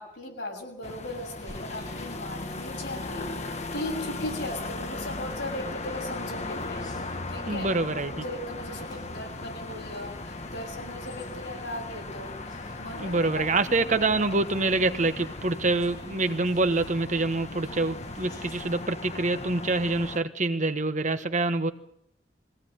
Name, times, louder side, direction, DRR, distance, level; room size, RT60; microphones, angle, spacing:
voice 1, 0.0-7.7 8.1-14.0, left 1 dB, 75° left, 1 dB, 7.2 m, -38 dB
sound 1, 0.8-20.2, left 2 dB, 40° left, 1.4 m, -38 dB
sound 2, 1.4-18.9, left 1 dB, 20° left, 2.8 m, -49 dB
voice 2, 7.5-8.2 13.0-21.7, right 2 dB, 45° right, 9 dB, 1.3 m, -26 dB
22.0 x 17.0 x 9.3 m, 0.73 s
head